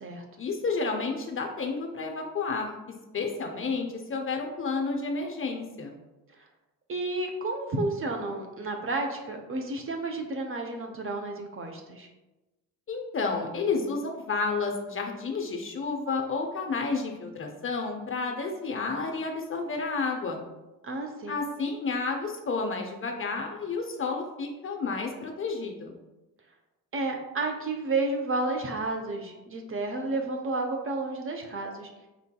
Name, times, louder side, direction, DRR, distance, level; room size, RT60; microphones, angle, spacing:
voice 1, 0.4-2.7 3.1-5.9 12.9-20.4 21.3-25.9, left 4 dB, 30° left, 2 dB, 0.5 m, -31 dB
voice 2, 6.9-12.1 20.8-21.4 26.9-31.9, right 2 dB, 30° right, 3 dB, 0.5 m, -31 dB
4.4 x 2.6 x 2.2 m, 1.1 s
hypercardioid pair, 50°, 45 cm